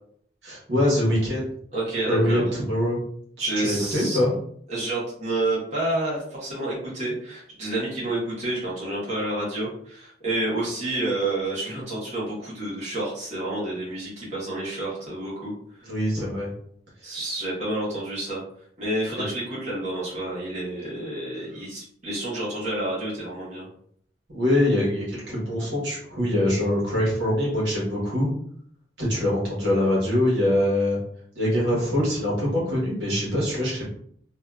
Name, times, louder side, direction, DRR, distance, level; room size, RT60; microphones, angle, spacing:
voice 1, 0.4-1.5 2.1-3.0 3.4-4.3 15.8-16.5 17.0-17.1 24.3-28.3 29.0-31.0 31.3-33.9, left 1 dB, 85° right, -5 dB, 1.2 m, -23 dB
voice 2, 1.7-2.4 3.4-4.2 4.7-15.5 15.8-15.9 17.0-18.4 18.8-23.7, right 2 dB, 40° right, -8 dB, 1.2 m, -29 dB
2.7 x 2.5 x 2.3 m, 0.64 s
head